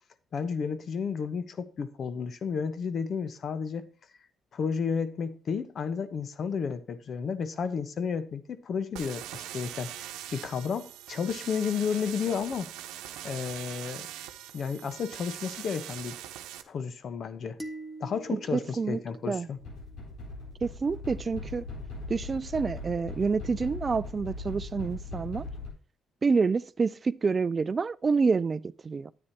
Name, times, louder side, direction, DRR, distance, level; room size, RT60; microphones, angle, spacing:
voice 1, 0.3-3.9 4.5-9.9 10.3-12.7 13.2-14.1 14.5-16.2 16.7-17.6 18.0-19.6, left 6 dB, 55° left, 1.0 m, -32 dB
sound 1, 9.0-16.6, right 12 dB, 90° right, 0.8 m, -42 dB
sound 2, 17.6-20.0, right 1 dB, 15° left, 1.2 m, -45 dB
voice 2, 18.3-19.0 19.3-19.5 20.6-21.7 22.1-25.4 26.2-29.1, right 4 dB, 35° right, 0.4 m, -28 dB
sound 3, 19.6-25.7, left 2 dB, 80° left, 4.3 m, -40 dB
9.8 x 8.9 x 2.9 m
cardioid pair, 75°, 0 cm